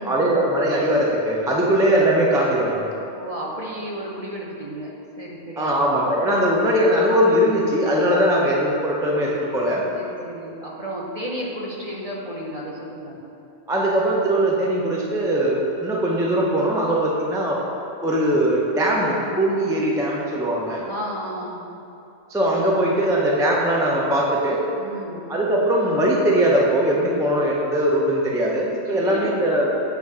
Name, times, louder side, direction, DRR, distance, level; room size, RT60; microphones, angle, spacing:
voice 1, 0.0-2.9 5.6-9.8 13.7-17.6 18.0-20.8 22.3-24.6 25.3-29.7, right 1 dB, 5° right, -4 dB, 0.4 m, -20 dB
voice 2, 3.1-4.9 5.2-5.7 6.3-6.4 9.9-13.2 20.8-21.6 24.8-25.2 28.8-29.3, equal, 35° right, -4 dB, 0.7 m, -33 dB
8.1 x 2.7 x 4.7 m, 2.7 s
omnidirectional pair, 1.2 m